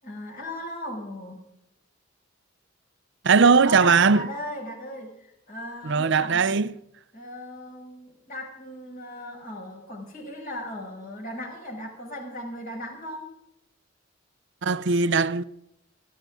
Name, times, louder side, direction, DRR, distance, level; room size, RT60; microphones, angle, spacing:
voice 1, 0.0-1.4 3.6-6.6 7.1-13.3, left 1 dB, 45° left, 6.1 m, -37 dB
voice 2, 3.2-4.2 5.8-6.7 14.6-15.4, right 5 dB, 65° right, 0.7 m, -19 dB
29.0 x 10.5 x 3.8 m
head